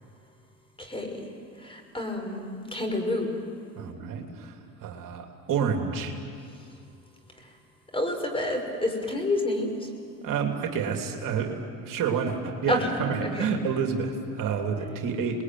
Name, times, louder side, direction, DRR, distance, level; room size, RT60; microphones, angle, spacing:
voice 1, 0.8-1.3 1.6-3.3 7.4-7.5 7.9-9.9 12.7-13.5, left 1 dB, 15° left, 3 dB, 5.7 m, -29 dB
voice 2, 3.8-4.6 4.8-6.1 10.2-15.4, right 6 dB, 55° right, 3 dB, 3.1 m, -29 dB
28.0 x 21.0 x 9.4 m, 2.3 s
hypercardioid pair, 80°, 39 cm